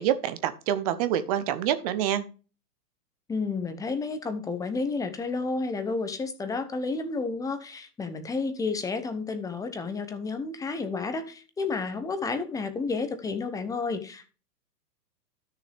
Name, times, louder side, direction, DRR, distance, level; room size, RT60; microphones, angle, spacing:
voice 1, 0.0-2.2, right 11 dB, 25° right, 12 dB, 0.5 m, -26 dB
voice 2, 3.3-14.3, left 4 dB, 5° left, 9 dB, 0.8 m, -31 dB
13.0 x 6.5 x 3.4 m, 0.35 s
hypercardioid pair, 120°, 49 cm